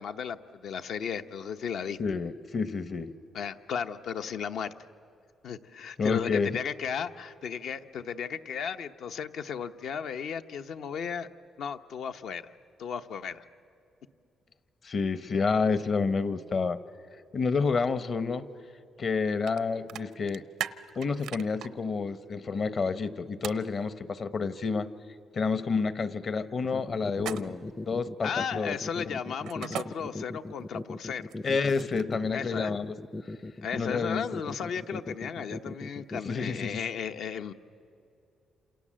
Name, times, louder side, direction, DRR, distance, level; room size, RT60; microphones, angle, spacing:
voice 1, 0.0-2.0 3.3-4.7 5.4-11.3 11.6-12.5 12.8-13.4 28.2-31.3 32.3-32.7 33.6-37.5, left 7 dB, 70° left, 8 dB, 0.9 m, -35 dB
voice 2, 2.0-3.1 6.0-6.6 14.8-16.8 17.3-18.5 19.0-20.4 21.0-24.9 25.3-28.8 31.4-33.0 33.7-34.2 36.3-36.8, left 4 dB, 45° left, 13 dB, 1.0 m, -29 dB
sound 1, 19.5-19.6 19.9-21.7 23.4-23.6 27.2-27.7 29.5-29.9 31.2-32.1, right 10 dB, 90° right, 0.7 m, -37 dB
sound 2, 26.6-36.6, left 2 dB, 20° left, 0.6 m, -38 dB
28.5 x 27.5 x 7.6 m, 2.7 s
cardioid pair, 110°, 0 cm